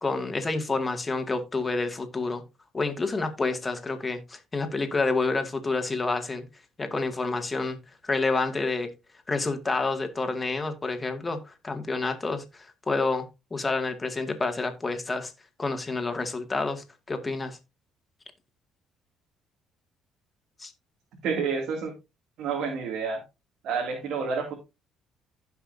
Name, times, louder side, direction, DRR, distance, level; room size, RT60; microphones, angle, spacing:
voice 1, 0.0-2.4 2.7-6.5 6.8-7.8 8.0-8.9 9.3-15.3 15.6-17.6 20.6-20.7, left 3 dB, 25° left, 2.0 m, -29 dB
voice 2, 21.2-21.9 22.4-23.2 23.6-24.5, right 5 dB, 70° right, 2.5 m, -29 dB
15.5 x 5.8 x 2.7 m
cardioid pair, 95°, 0 cm